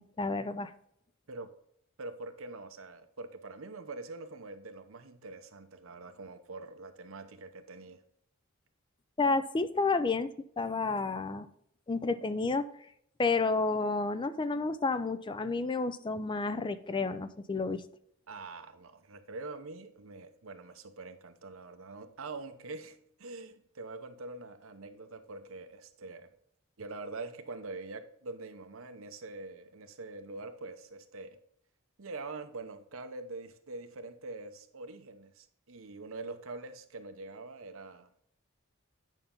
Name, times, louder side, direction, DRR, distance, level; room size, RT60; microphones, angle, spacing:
voice 1, 0.2-0.7 9.2-10.3 10.6-11.5 11.9-12.7 13.2-17.8, left 3 dB, 25° left, 13 dB, 0.4 m, -30 dB
voice 2, 2.0-8.0 18.3-26.3 26.8-31.4 32.0-38.3, right 3 dB, 80° right, 8 dB, 0.8 m, -44 dB
9.1 x 5.7 x 3.8 m, 0.71 s
head